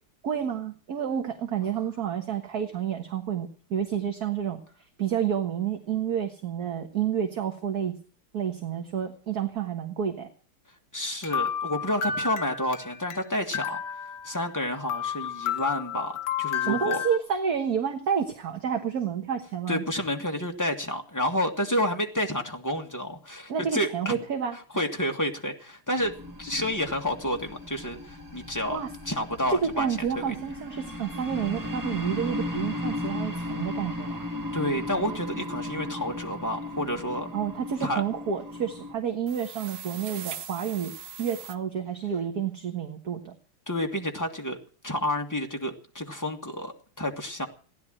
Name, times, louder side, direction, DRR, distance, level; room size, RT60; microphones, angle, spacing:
voice 1, 0.2-4.6 5.0-7.9 8.3-10.3 16.6-19.8 23.5-24.6 28.7-28.9 29.5-34.2 37.3-43.4, right 8 dB, 50° right, 4 dB, 1.7 m, -29 dB
voice 2, 10.9-13.8 14.2-17.0 19.7-24.1 24.7-26.1 26.4-28.8 29.0-29.9 30.1-30.3 34.5-37.3 37.8-38.0 43.7-44.6 44.8-47.5, left 1 dB, 10° left, 3 dB, 1.7 m, -30 dB
sound 1, 11.2-13.2 13.5-14.6 14.9-17.2, left 8 dB, 60° left, 1.4 m, -31 dB
sound 2, 26.0-38.9, left 1 dB, 10° right, 2.2 m, -36 dB
sound 3, 39.3-41.6, right 8 dB, 75° right, 2.1 m, -40 dB
16.5 x 10.5 x 7.6 m, 0.41 s
omnidirectional pair, 2.3 m